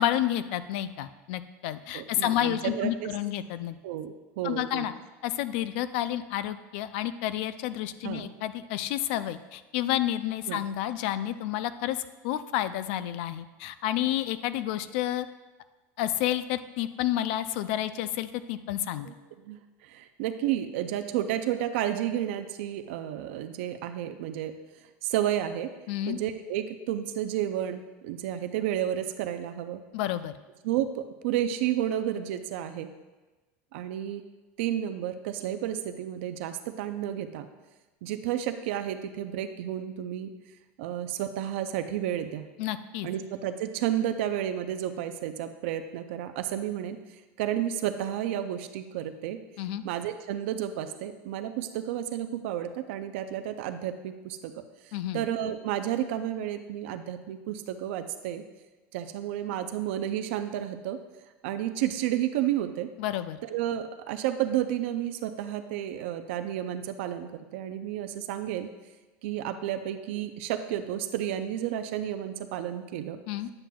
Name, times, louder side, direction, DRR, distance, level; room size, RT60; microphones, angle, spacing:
voice 1, 0.0-3.8 4.4-4.9 5.2-12.0 12.2-15.3 16.0-19.1 25.9-26.2 29.9-30.3 42.6-43.1 49.6-49.8 54.9-55.3 63.0-63.4 73.3-73.5, left 12 dB, 60° left, 13 dB, 0.3 m, -30 dB
voice 2, 1.9-3.1 3.8-4.9 8.0-8.3 10.5-10.6 19.1-19.2 19.5-24.5 25.0-25.7 26.1-29.8 30.6-32.9 33.7-34.2 34.6-37.5 38.0-40.3 40.8-42.5 43.0-49.4 49.8-54.5 54.8-58.4 58.9-61.0 61.4-62.9 63.4-68.7 69.2-73.2, right 11 dB, 70° right, 9 dB, 0.4 m, -31 dB
8.7 x 7.4 x 2.3 m, 1.2 s
cardioid pair, 175°, 7 cm